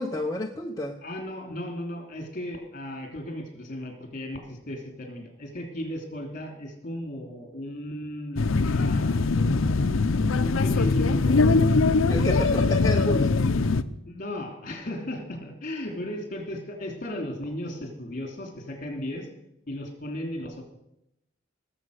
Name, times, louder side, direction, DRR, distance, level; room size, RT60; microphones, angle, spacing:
voice 1, 0.0-1.0 12.1-13.4, left 1 dB, 15° left, 1 dB, 0.8 m, -30 dB
voice 2, 1.0-9.4 9.7-9.8 10.4-11.8 14.1-19.3 19.7-20.6, left 1 dB, 40° left, 4 dB, 2.8 m, -36 dB
sound 1, 8.4-13.8, left 3 dB, 80° left, 0.6 m, -22 dB
19.0 x 7.5 x 6.4 m, 0.83 s
head